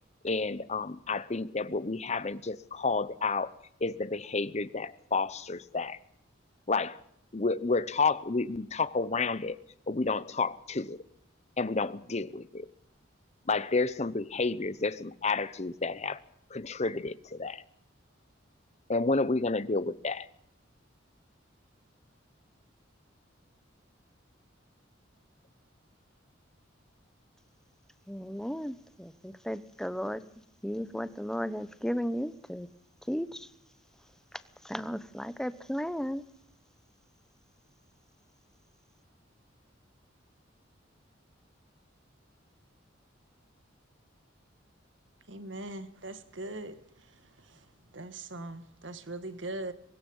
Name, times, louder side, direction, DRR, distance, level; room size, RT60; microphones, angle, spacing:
voice 1, 0.2-3.5 3.8-6.0 6.7-7.0 7.3-9.6 9.9-11.0 11.6-12.7 13.5-16.2 16.5-17.6 18.9-20.3, left 3 dB, 35° left, 0.9 m, -30 dB
voice 2, 28.1-30.2 30.6-32.7 33.1-33.5 34.6-36.2, equal, 5° left, 0.9 m, -34 dB
voice 3, 45.3-46.8 47.9-49.7, right 2 dB, 75° right, 1.8 m, -40 dB
23.0 x 20.5 x 5.5 m
head